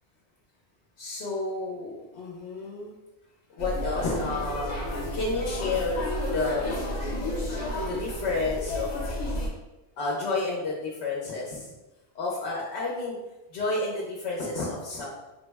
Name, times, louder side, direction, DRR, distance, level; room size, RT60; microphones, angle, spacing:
voice 1, 1.0-2.9 3.6-6.1 6.3-6.7 7.8-8.9 10.0-11.7 12.1-13.2 13.5-15.1, left 3 dB, 85° left, -4 dB, 0.9 m, -30 dB
sound 1, 3.6-9.5, left 1 dB, 50° left, 0.6 m, -31 dB
3.6 x 2.0 x 3.3 m, 1.0 s
omnidirectional pair, 1.1 m